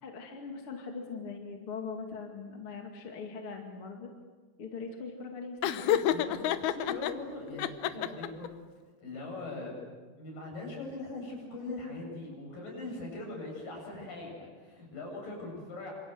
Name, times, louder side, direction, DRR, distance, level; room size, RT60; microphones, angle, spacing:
voice 1, 0.0-4.1 4.6-6.0, left 4 dB, 40° left, 2 dB, 2.8 m, -41 dB
Laughter, 5.6-7.1 7.6-8.5, left 11 dB, 85° left, 2.9 m, -29 dB
voice 2, 6.1-8.5 9.0-9.7 10.2-15.9, left 2 dB, 65° left, 0 dB, 9.5 m, -41 dB
27.0 x 26.5 x 7.9 m, 1.4 s
omnidirectional pair, 4.3 m